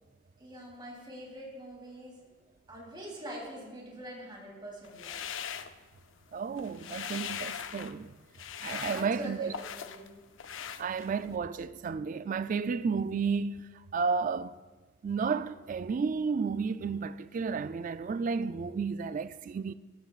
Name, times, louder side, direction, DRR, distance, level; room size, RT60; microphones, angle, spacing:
voice 1, 0.4-2.2 2.7-5.1 8.8-10.0, right 1 dB, 25° right, 3.3 m, -44 dB
sound 1, 4.8-6.2 6.5-8.0 8.3-10.1 10.4-11.3, left 8 dB, 85° left, 0.5 m, -40 dB
voice 2, 6.3-8.1 8.6-9.5 10.8-13.7 13.9-14.5 15.0-19.7, right 5 dB, 45° right, 0.3 m, -32 dB
16.5 x 13.5 x 2.4 m
head